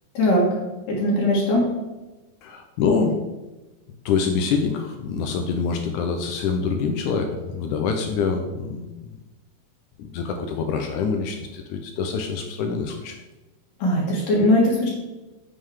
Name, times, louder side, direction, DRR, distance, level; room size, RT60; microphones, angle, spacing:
voice 1, 0.1-0.5 0.9-1.7 13.8-14.9, left 1 dB, 65° left, -5 dB, 3.0 m, -20 dB
voice 2, 2.4-3.2 4.1-9.1 10.0-13.2, left 5 dB, 80° left, 4 dB, 1.8 m, -25 dB
7.7 x 7.5 x 4.8 m, 1.1 s
omnidirectional pair, 4.4 m